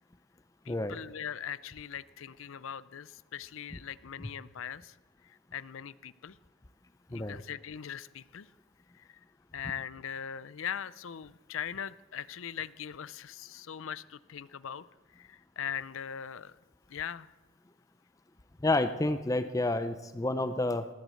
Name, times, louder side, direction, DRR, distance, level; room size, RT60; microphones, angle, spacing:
voice 1, 0.6-5.0 5.2-6.4 7.1-8.5 8.9-9.2 9.5-14.8 15.1-16.6 16.9-17.3, left 8 dB, 70° left, 18 dB, 0.5 m, -40 dB
voice 2, 7.1-7.4 18.6-20.9, left 2 dB, 15° left, 10 dB, 0.5 m, -29 dB
19.0 x 8.2 x 7.7 m, 1.2 s
head